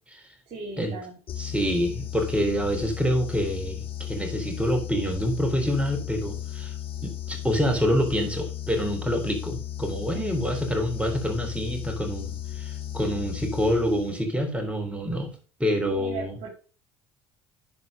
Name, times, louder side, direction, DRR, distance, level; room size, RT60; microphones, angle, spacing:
voice 1, 0.5-1.2 10.1-10.4 13.0-13.3 15.9-16.5, right 4 dB, 60° right, -2 dB, 3.6 m, -38 dB
sound 1, 1.3-14.4, left 11 dB, 45° left, 1.2 m, -35 dB
voice 2, 1.4-6.7 7.0-16.3, equal, 10° right, 4 dB, 3.8 m, -27 dB
11.0 x 5.0 x 5.2 m, 0.36 s
hypercardioid pair, 75°, 13 cm